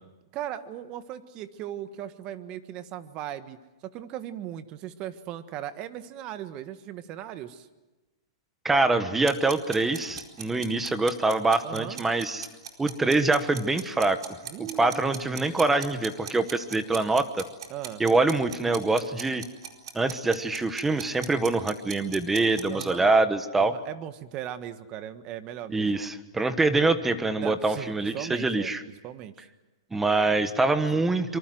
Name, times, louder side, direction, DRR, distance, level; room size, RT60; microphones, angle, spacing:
voice 1, 0.3-7.7 11.6-12.0 14.4-15.8 17.7-18.0 22.7-23.1 23.6-26.1 27.4-28.7 29.0-29.5 30.9-31.1, right 11 dB, 35° right, 11 dB, 1.5 m, -38 dB
voice 2, 8.6-12.5 12.8-14.2 14.6-17.4 18.0-19.4 19.9-23.7 25.7-28.8 29.9-31.4, right 3 dB, 10° right, 11 dB, 1.3 m, -24 dB
sound 1, 9.2-22.9, right 8 dB, 70° right, 4.4 m, -40 dB
25.5 x 23.5 x 7.8 m, 1.1 s
hypercardioid pair, 145°, 3 cm